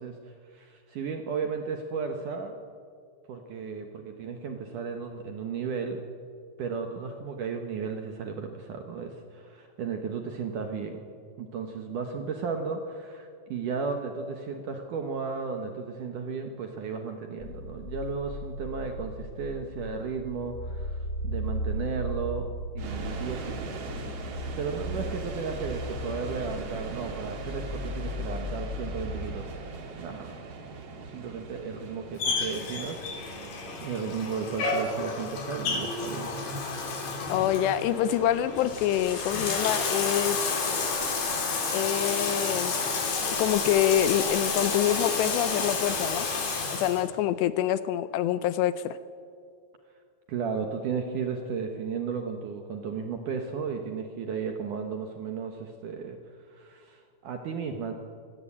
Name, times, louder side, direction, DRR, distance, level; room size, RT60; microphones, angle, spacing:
voice 1, 0.0-2.6 3.3-6.0 6.6-11.0 11.4-21.0 21.2-22.5 22.8-23.6 24.6-30.4 31.1-33.5 33.8-36.3 50.3-56.2 56.5-57.9, right 5 dB, 65° right, 4 dB, 2.1 m, -34 dB
sound 1, 17.4-29.4, equal, 25° left, 2.3 m, -36 dB
sound 2, 22.8-39.8, right 4 dB, 45° right, 2.2 m, -42 dB
Bathtub (filling or washing), 32.2-47.0, left 4 dB, 55° left, 4.8 m, -30 dB
voice 2, 37.3-40.8 41.7-42.8 43.3-46.3 46.7-49.0, left 11 dB, 80° left, 14 dB, 2.7 m, -26 dB
25.5 x 17.5 x 8.6 m, 2.3 s
omnidirectional pair, 5.2 m